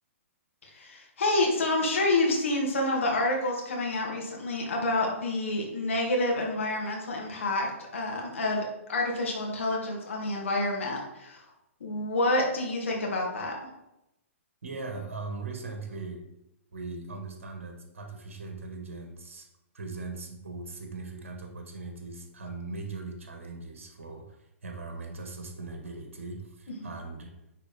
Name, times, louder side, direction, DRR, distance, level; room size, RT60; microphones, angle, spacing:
voice 1, 0.6-11.5 11.8-13.5, left 2 dB, 65° left, -1 dB, 2.2 m, -28 dB
voice 2, 14.6-16.2 16.7-19.5 19.7-27.3, right 3 dB, 65° right, 4 dB, 1.8 m, -39 dB
9.7 x 4.4 x 4.3 m, 0.89 s
figure-of-eight pair, 120°, 7 cm